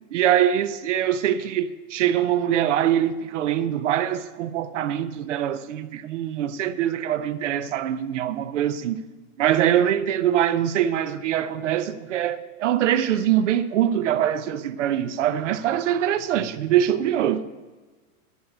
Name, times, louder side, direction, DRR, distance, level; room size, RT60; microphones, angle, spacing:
voice 1, 0.1-9.0 9.4-17.4, right 10 dB, 55° right, 0.9 m, -23 dB
11.0 x 7.6 x 9.4 m
supercardioid pair, 170°, 43 cm